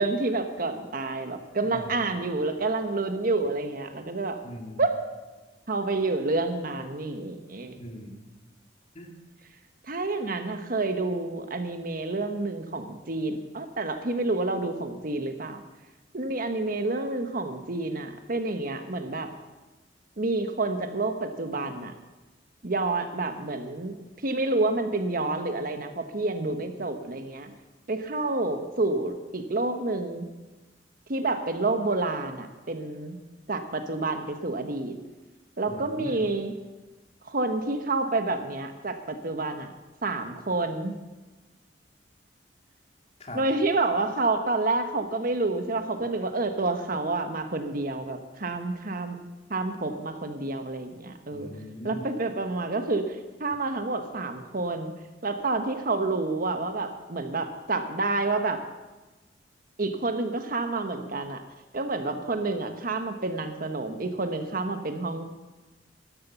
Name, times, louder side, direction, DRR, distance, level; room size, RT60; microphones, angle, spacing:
voice 1, 0.0-4.4 4.8-4.9 5.7-7.8 9.9-15.6 16.1-19.3 20.2-21.9 22.6-23.9 24.2-27.5 27.9-30.3 31.1-33.2 33.5-35.0 35.6-36.5 37.3-39.7 40.0-40.9 43.3-49.2 49.5-51.5 51.8-54.9 55.2-58.6 59.8-61.4 61.7-65.3, right 2 dB, 55° right, 7 dB, 1.2 m, -29 dB
voice 2, 1.6-2.0 4.4-4.8 7.8-8.2 8.9-9.1 35.7-36.2 43.2-43.4 51.3-52.1, equal, 40° left, 2 dB, 2.3 m, -40 dB
13.0 x 11.0 x 6.9 m, 1.2 s
head